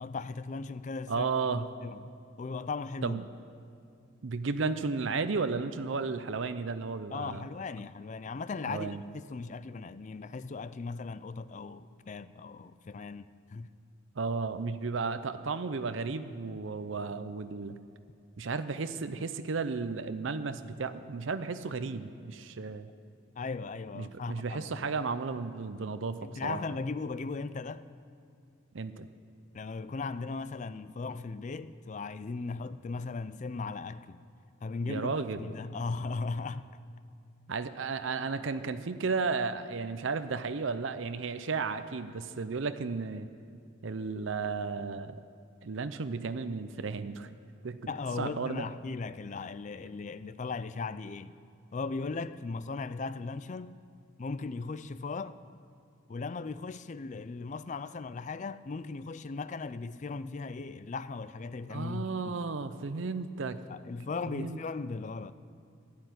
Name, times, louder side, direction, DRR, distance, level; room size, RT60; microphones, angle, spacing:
voice 1, 0.0-2.1 2.4-3.2 7.1-13.7 23.4-24.9 26.2-27.8 29.5-34.2 34.6-36.7 47.9-51.3 51.7-53.8 54.2-55.3 56.1-62.4 63.7-65.3, left 4 dB, 35° left, 0.4 m, -37 dB
voice 2, 1.1-1.7 3.0-3.2 4.2-7.5 8.7-9.0 14.2-17.8 18.4-22.9 23.9-26.6 28.7-29.1 34.9-35.5 37.5-43.3 43.8-45.2 45.6-47.3 47.6-47.8 48.2-48.7 61.7-63.6 64.3-64.6, right 4 dB, 65° right, 0.6 m, -33 dB
12.0 x 10.5 x 9.1 m
head